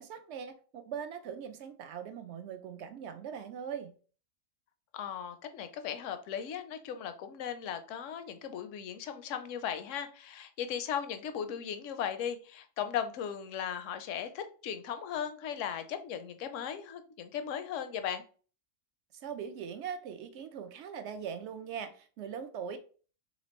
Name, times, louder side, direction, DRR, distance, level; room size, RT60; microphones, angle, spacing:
voice 1, 0.0-3.9 19.2-22.8, right 7 dB, 65° right, 0.8 m, -41 dB
voice 2, 4.9-18.2, left 8 dB, 75° left, 0.9 m, -37 dB
4.1 x 3.3 x 3.0 m
omnidirectional pair, 1.4 m